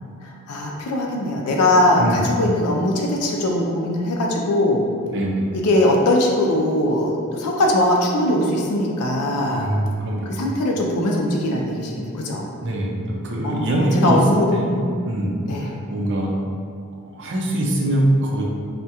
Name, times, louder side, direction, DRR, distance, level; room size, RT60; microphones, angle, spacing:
voice 1, 0.2-4.9 5.5-9.7 10.3-12.5 13.4-14.8 15.4-15.8, left 1 dB, 80° left, -1 dB, 0.4 m, -21 dB
voice 2, 2.0-2.3 5.1-5.5 9.6-10.3 12.6-14.2 14.5-14.7 15.1-15.4 15.9-16.3 17.0-18.4, right 1 dB, 55° right, -2 dB, 0.5 m, -23 dB
3.4 x 2.1 x 2.8 m, 2.4 s
head